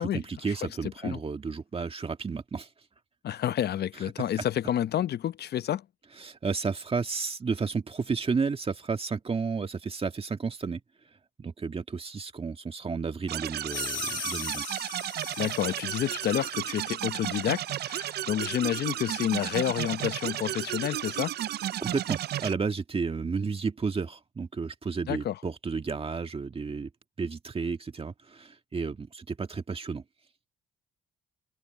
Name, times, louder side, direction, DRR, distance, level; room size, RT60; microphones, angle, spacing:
voice 1, 0.0-2.7 6.2-10.8 11.4-14.9 21.8-26.9 27.2-30.0, right 5 dB, 30° right, 1.8 m, -32 dB
voice 2, 3.2-5.8 15.4-21.3 25.1-25.4, left 11 dB, 55° left, 0.8 m, -29 dB
sound 1, 13.3-22.5, right 12 dB, 55° right, 0.5 m, -33 dB
sound 2, 13.7-16.7, left 10 dB, 80° left, 2.8 m, -39 dB
open air
cardioid pair, 90°, 20 cm